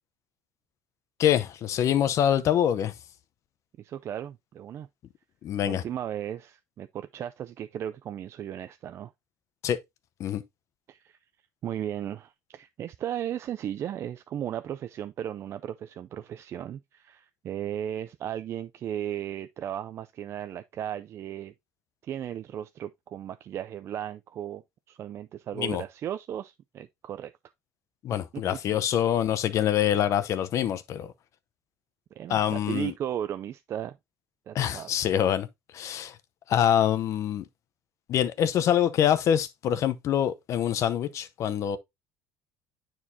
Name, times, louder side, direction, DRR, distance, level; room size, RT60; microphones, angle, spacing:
voice 1, 1.2-2.9 5.4-5.8 9.6-9.8 10.2-10.4 25.6-25.8 28.0-31.1 32.3-32.9 34.5-35.5 35.7-36.1 36.5-37.4 38.1-41.8, left 10 dB, 55° left, 0.7 m, -25 dB
voice 2, 3.8-4.9 5.6-9.1 10.9-11.2 11.6-21.5 22.1-24.6 24.9-27.3 28.3-28.4 32.2-34.0 34.5-34.9, right 10 dB, 45° right, 0.4 m, -35 dB
9.4 x 4.5 x 2.7 m
cardioid pair, 105°, 6 cm